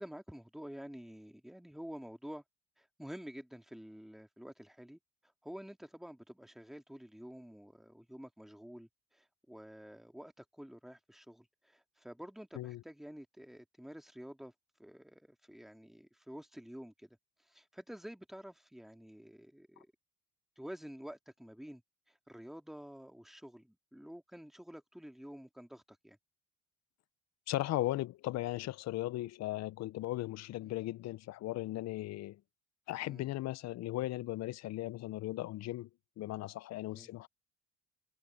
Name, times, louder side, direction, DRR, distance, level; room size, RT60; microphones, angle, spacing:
voice 1, 0.0-2.4 2.8-5.0 5.4-14.5 14.8-17.2 17.5-19.9 20.6-21.8 22.1-26.2 30.6-30.7 33.0-33.3 36.9-37.1, equal, ahead, 2.8 m, -49 dB
voice 2, 27.5-32.4 32.9-35.9 36.2-37.3, left 16 dB, 60° left, 0.8 m, -37 dB
supercardioid pair, 75°, 30 cm